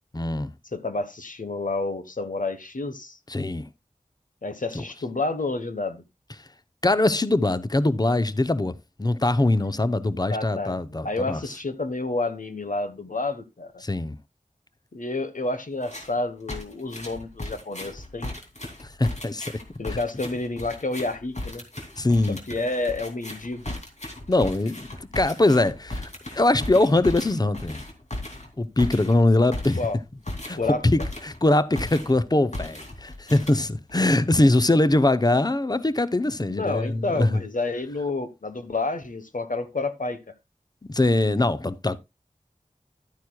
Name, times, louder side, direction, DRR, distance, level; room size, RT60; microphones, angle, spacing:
voice 1, 0.1-0.5 3.3-3.6 4.7-4.8 6.8-11.4 13.8-14.2 18.8-19.5 19.9-20.0 22.0-22.4 24.3-27.8 28.6-29.8 30.5-37.4 40.9-42.0, left 2 dB, 30° left, 0.7 m, -22 dB
voice 2, 0.7-3.2 4.4-6.0 10.3-13.8 14.9-18.3 19.8-21.6 22.3-23.6 29.8-30.0 30.5-30.8 36.5-40.3, left 2 dB, 80° left, 1.2 m, -29 dB
sound 1, 15.8-16.2 16.5-31.5 31.8-32.2 32.5-33.9, left 1 dB, 55° left, 2.7 m, -36 dB
12.0 x 9.2 x 2.3 m
wide cardioid pair, 45°, 14 cm